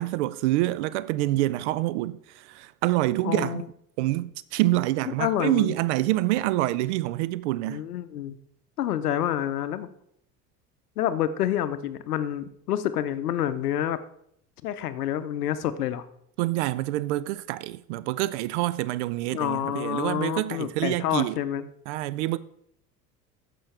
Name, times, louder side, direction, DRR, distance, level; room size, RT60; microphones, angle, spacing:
voice 1, 0.0-3.6 4.0-7.8 16.4-21.4 21.9-22.4, right 16 dB, 50° right, 0.4 m, -26 dB
voice 2, 3.2-3.7 5.1-5.7 7.7-8.3 8.8-9.9 11.0-14.0 14.6-16.0 19.3-21.7, left 11 dB, 70° left, 0.8 m, -28 dB
14.0 x 5.3 x 3.3 m
figure-of-eight pair, 70°, 48 cm